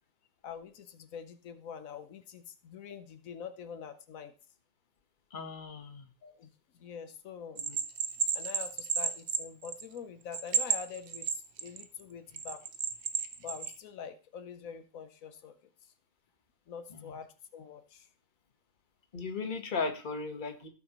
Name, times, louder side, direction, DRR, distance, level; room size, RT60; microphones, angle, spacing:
voice 1, 0.4-4.3 6.2-6.5 6.7-7.6 8.3-12.6 13.4-15.6 16.7-18.1, left 7 dB, 85° left, 9 dB, 1.2 m, -45 dB
voice 2, 5.3-6.1 7.6-7.8 16.9-17.2 19.1-20.7, left 4 dB, 40° left, 6 dB, 1.3 m, -37 dB
Bell, 7.6-10.0 10.3-11.8 12.4-13.7, right 6 dB, 55° right, 1.1 m, -32 dB
16.5 x 5.9 x 3.0 m, 0.35 s
omnidirectional pair, 1.4 m